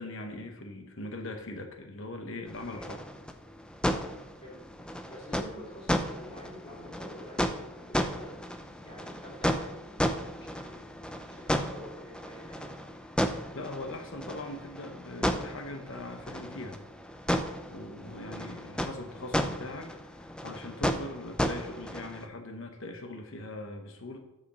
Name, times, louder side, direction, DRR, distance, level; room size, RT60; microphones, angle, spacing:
voice 1, 0.0-3.0 13.5-16.9 17.7-24.2, left 2 dB, 60° left, 4 dB, 1.0 m, -41 dB
sound 1, 2.5-22.3, equal, 5° left, 0.4 m, -34 dB
voice 2, 5.1-8.3 8.8-10.8 11.3-12.9 18.2-18.5, left 1 dB, 25° left, -4 dB, 2.9 m, -48 dB
7.0 x 5.1 x 6.8 m, 0.92 s
head